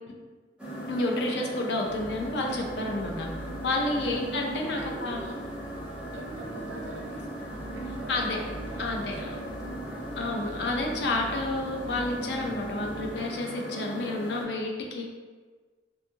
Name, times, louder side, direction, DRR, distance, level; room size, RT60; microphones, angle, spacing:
sound 1, 0.6-14.4, right 1 dB, 5° right, 0.5 m, -38 dB
voice 1, 0.9-3.3 3.6-5.2 8.1-8.4 8.8-9.3 10.2-15.0, left 2 dB, 65° left, 0 dB, 0.4 m, -30 dB
sound 2, 1.8-13.2, equal, 85° left, 0.9 m, -44 dB
voice 2, 4.8-5.3 6.1-10.1, right 2 dB, 85° right, 0 dB, 0.5 m, -44 dB
2.6 x 2.4 x 2.7 m, 1.4 s
head